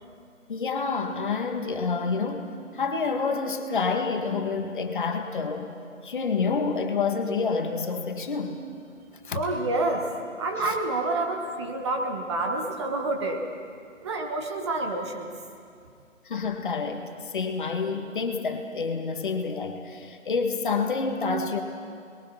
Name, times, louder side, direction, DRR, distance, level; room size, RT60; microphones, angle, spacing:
voice 1, 0.5-5.7 6.0-8.6 9.3-9.5 10.6-10.8 16.3-21.6, left 4 dB, 40° left, 4 dB, 1.9 m, -28 dB
voice 2, 9.3-10.1 10.4-13.4 14.0-15.3, right 2 dB, 20° right, 2 dB, 1.6 m, -28 dB
29.0 x 22.0 x 5.7 m, 2.3 s
figure-of-eight pair, 155°, 39 cm